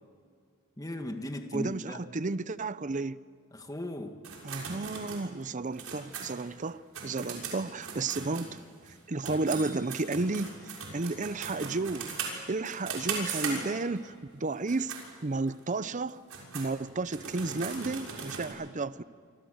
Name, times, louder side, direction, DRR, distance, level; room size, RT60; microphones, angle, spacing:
voice 1, 0.8-2.0 3.5-4.2 9.3-9.7, left 1 dB, 15° left, 1.8 m, -38 dB
voice 2, 1.5-3.2 4.4-8.6 9.1-10.5 10.9-14.9 15.2-16.2 16.5-19.0, right 3 dB, 35° right, 0.7 m, -32 dB
sound 1, 4.2-8.9 9.2-14.0 14.5-15.0 15.5-15.6 16.1-18.5, right 5 dB, 85° right, 6.5 m, -39 dB
28.0 x 25.0 x 8.0 m
head